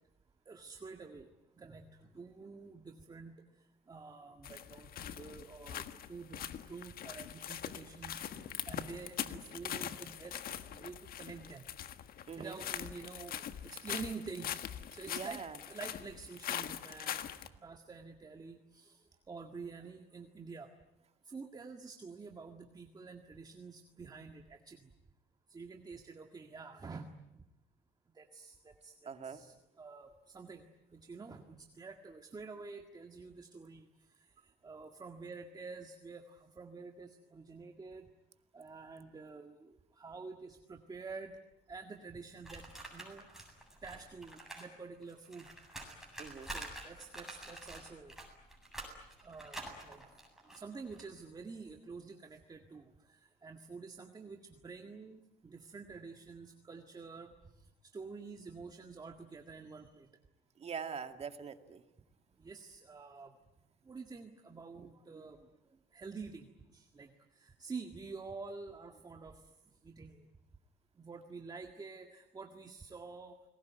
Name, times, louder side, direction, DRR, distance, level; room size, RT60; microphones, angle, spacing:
voice 1, 0.5-1.3 1.6-1.8 2.1-3.3 3.9-8.2 8.7-10.4 10.7-11.7 12.3-14.6 14.9-15.4 15.7-17.2 17.6-20.7 21.3-24.9 25.5-27.1 28.2-28.9 29.2-30.6 30.9-33.9 34.6-38.1 38.5-41.3 41.7-43.2 43.8-45.5 45.8-46.1 46.5-48.1 48.8-50.0 50.5-52.9 53.4-57.3 57.9-60.1 62.4-63.3 63.9-65.4 65.9-67.1 67.4-69.4 69.8-70.2 71.0-73.4, right 4 dB, 25° right, 5 dB, 1.9 m, -48 dB
sound 1, 4.4-17.5, left 10 dB, 60° left, 1.6 m, -42 dB
voice 2, 12.3-12.6 15.1-15.6 29.1-29.4 46.2-46.5 60.6-61.8, right 6 dB, 40° right, 7 dB, 2.2 m, -43 dB
sound 2, 42.4-44.7 44.9-51.0, right 1 dB, ahead, 7.9 m, -48 dB
29.5 x 20.5 x 9.3 m, 0.93 s
cardioid pair, 110°, 17 cm